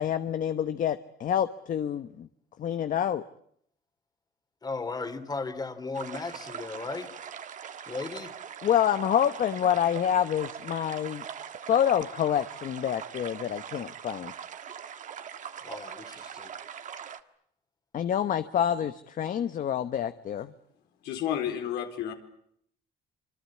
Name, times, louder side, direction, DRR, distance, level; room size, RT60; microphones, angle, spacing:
voice 1, 0.0-2.3 2.6-3.2 8.6-11.2 11.7-14.3 17.9-20.5, left 9 dB, 50° left, 11 dB, 1.1 m, -27 dB
voice 2, 4.6-7.1 7.9-8.3 15.6-16.5, left 3 dB, 25° left, 9 dB, 3.0 m, -36 dB
sound 1, 5.9-17.2, right 8 dB, 50° right, 1.6 m, -42 dB
voice 3, 21.0-22.1, left 10 dB, 85° left, 5 dB, 4.3 m, -31 dB
26.5 x 25.0 x 8.6 m, 0.69 s
cardioid pair, 110°, 17 cm